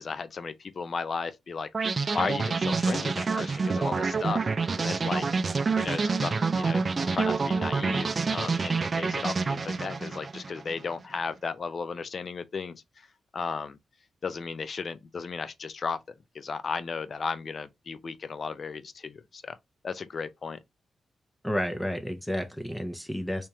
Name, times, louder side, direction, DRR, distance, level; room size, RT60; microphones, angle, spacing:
voice 1, 0.0-4.5 4.8-5.3 5.8-13.1 13.3-13.8 14.2-16.0 16.3-19.6 19.8-20.6, left 5 dB, 60° left, 0.5 m, -35 dB
sound 1, 1.7-10.8, right 4 dB, 45° right, 0.3 m, -27 dB
voice 2, 21.4-23.5, equal, 10° left, 0.6 m, -31 dB
3.3 x 2.9 x 2.9 m
supercardioid pair, 50°, 0 cm